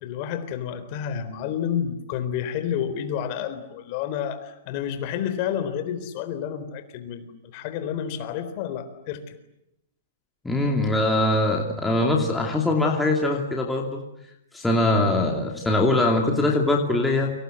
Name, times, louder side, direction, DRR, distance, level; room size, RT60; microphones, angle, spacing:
voice 1, 0.0-9.3, left 9 dB, 35° left, 10 dB, 3.9 m, -30 dB
voice 2, 10.4-14.0 14.5-17.3, left 2 dB, 5° left, 0 dB, 2.7 m, -22 dB
29.5 x 25.5 x 7.8 m, 0.84 s
hypercardioid pair, 165°, 0 cm